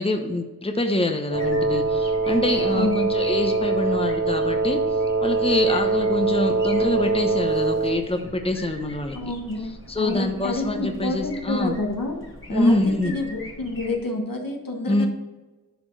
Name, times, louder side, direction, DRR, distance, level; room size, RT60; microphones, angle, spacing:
voice 1, 0.0-4.8 5.2-9.2 9.9-11.8 12.5-13.1 14.9-15.1, left 1 dB, 15° left, 4 dB, 0.9 m, -25 dB
sound 1, 1.3-14.0, left 1 dB, 35° left, 2.4 m, -43 dB
Wind instrument woodwind instrument, 1.3-8.1, right 3 dB, 50° right, 0.9 m, -23 dB
voice 2, 2.7-3.0 9.1-9.7 10.0-12.2 12.5-12.7 13.0-15.1, left 2 dB, 75° left, 1 dB, 1.6 m, -28 dB
10.5 x 4.4 x 4.7 m, 1.2 s
wide cardioid pair, 55°, 34 cm